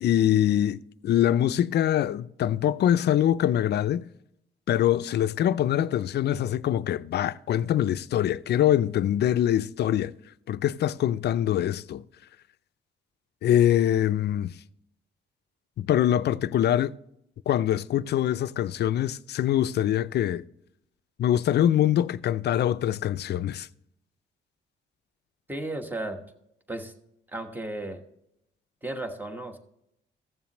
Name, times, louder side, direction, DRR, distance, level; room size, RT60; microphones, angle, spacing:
voice 1, 0.0-4.1 4.7-10.1 10.5-12.0 13.4-14.5 15.8-16.9 17.5-20.4 21.2-23.7, left 11 dB, 55° left, 0.4 m, -24 dB
voice 2, 25.5-26.2 26.7-26.9 27.3-28.0 28.8-29.6, right 2 dB, 10° right, 1.2 m, -34 dB
15.5 x 7.1 x 3.0 m
cardioid pair, 90°, 20 cm